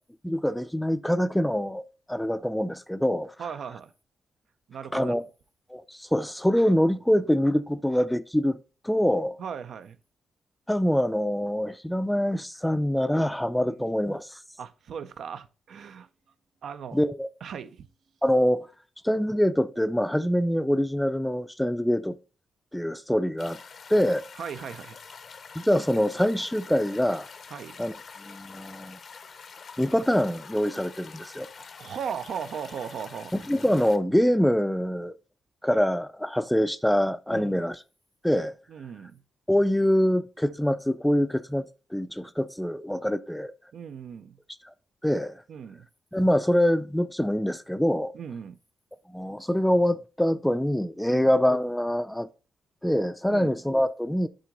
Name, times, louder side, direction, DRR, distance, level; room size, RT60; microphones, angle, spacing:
voice 1, 0.2-1.8 2.1-3.3 4.9-5.2 5.7-8.6 8.8-9.4 10.7-14.4 16.9-17.3 18.2-18.7 19.0-22.2 22.7-23.6 23.9-24.2 25.6-27.3 27.8-29.0 29.8-31.5 33.3-35.1 35.6-37.8 38.2-38.5 39.5-43.5 45.0-45.4 46.1-48.1 49.1-52.3 52.8-54.3, equal, 5° left, 0.4 m, -25 dB
voice 2, 3.4-3.9 4.7-5.2 9.4-10.0 13.6-13.7 14.6-16.1 16.6-17.0 17.4-17.9 24.4-25.0 27.5-27.8 31.8-33.3 37.3-37.6 38.7-39.2 43.7-44.4 45.5-45.9 48.1-48.6 51.1-51.3 53.3-53.5, right 7 dB, 70° right, 0.5 m, -37 dB
sound 1, 23.4-34.0, left 5 dB, 50° left, 0.6 m, -46 dB
7.5 x 3.8 x 5.1 m
cardioid pair, 110°, 0 cm